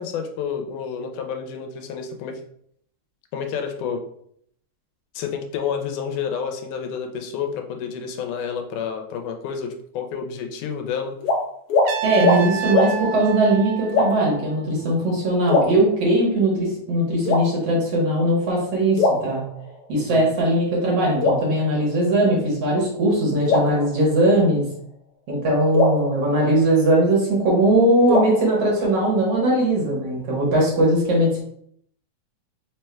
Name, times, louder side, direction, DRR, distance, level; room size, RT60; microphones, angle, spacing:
voice 1, 0.0-2.4 3.3-4.0 5.2-11.2 12.2-12.3 19.9-20.3, left 7 dB, 85° left, 4 dB, 2.1 m, -29 dB
sound 1, 11.2-11.4 11.7-11.9 12.2-12.4 12.7-12.9 13.9-14.4 15.5-16.3 17.3-18.0 19.0-20.0 21.2-22.3 23.5-24.7 25.7-27.2 28.1-29.3, left 2 dB, 70° left, 1.4 m, -23 dB
Trumpet, 11.8-14.8, right 8 dB, 80° right, 1.8 m, -30 dB
voice 2, 12.0-19.5 19.9-24.7 25.3-31.4, right 1 dB, 60° right, -3 dB, 1.9 m, -20 dB
4.8 x 4.4 x 2.2 m, 0.67 s
omnidirectional pair, 3.5 m